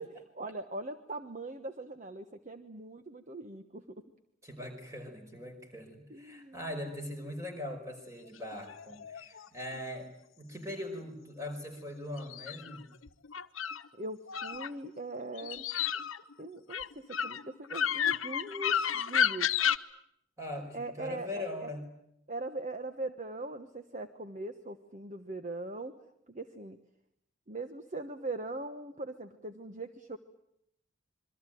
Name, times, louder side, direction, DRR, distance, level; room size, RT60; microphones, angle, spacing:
voice 1, 0.0-4.0 6.1-6.6 13.9-15.7 16.4-19.5 20.7-21.7 22.3-25.9 26.3-26.8 27.5-30.2, right 2 dB, 35° right, 8 dB, 1.2 m, -41 dB
voice 2, 4.4-12.9 20.4-21.9, left 1 dB, 15° right, 5 dB, 5.2 m, -41 dB
sound 1, 8.5-9.5 12.2-13.8 14.3-15.0 15.3-19.8, left 8 dB, 80° left, 1.1 m, -31 dB
27.0 x 23.0 x 9.2 m, 0.76 s
head